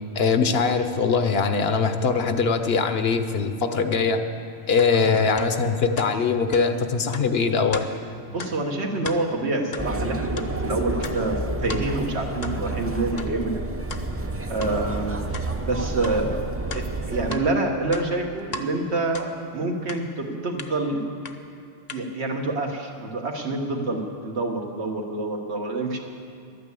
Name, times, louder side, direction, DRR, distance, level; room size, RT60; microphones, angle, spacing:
voice 1, 0.1-4.2 4.7-7.8, left 5 dB, 65° left, 8 dB, 1.0 m, -22 dB
sound 1, 4.8-4.9 5.4-5.5 6.0-6.1 6.5-6.6 7.1-7.3 7.7-7.9 8.4-8.5 8.9-9.2 9.7-9.9 10.3-10.5 11.0-11.2 11.7-11.8 12.4-12.6 13.2-13.3 13.9-14.0 14.6-14.7 15.3-15.5 16.0-16.2 16.7-17.5 17.8-18.7 19.1-19.3 19.9-20.0 20.6-20.7 21.2-21.3 21.9-22.0, left 3 dB, 45° left, 0.8 m, -36 dB
voice 2, 8.3-13.6 14.5-16.4 16.7-21.0 21.9-26.0, right 2 dB, 80° right, 2 dB, 1.6 m, -27 dB
sound 2, 9.8-17.3, right 2 dB, 20° right, 0.4 m, -30 dB
12.0 x 9.3 x 8.4 m, 2.5 s
omnidirectional pair, 1.1 m